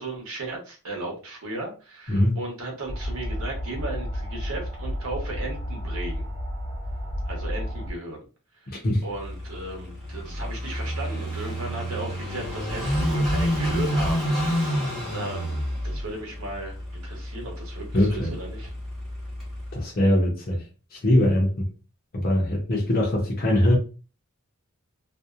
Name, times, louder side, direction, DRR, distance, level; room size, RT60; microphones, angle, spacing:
voice 1, 0.0-6.3 7.2-8.2 9.0-14.9 15.1-15.6 15.8-18.7, right 2 dB, 85° right, 1.0 m, -35 dB
voice 2, 2.1-2.4 8.7-9.0 17.9-18.3 19.7-20.6 20.9-21.7 22.1-23.8, left 1 dB, 45° left, 0.6 m, -22 dB
sound 1, 2.9-7.9, equal, 55° right, 0.6 m, -31 dB
Car passing by / Idling, 9.1-19.8, equal, ahead, 0.9 m, -29 dB
2.7 x 2.1 x 2.3 m
head